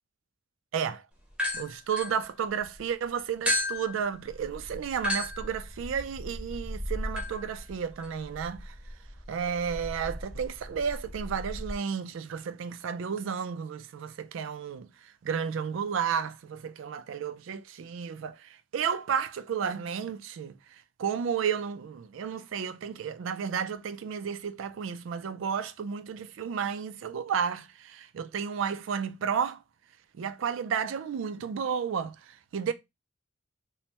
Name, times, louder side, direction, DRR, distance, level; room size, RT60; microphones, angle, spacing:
voice 1, 0.7-1.0 1.5-8.7 9.3-14.9 15.2-20.5 21.0-29.6 30.2-32.7, right 7 dB, 65° right, 0.3 m, -32 dB
sound 1, 1.3-2.8 3.5-11.7, left 1 dB, 5° right, 0.6 m, -35 dB
3.2 x 2.1 x 2.8 m
head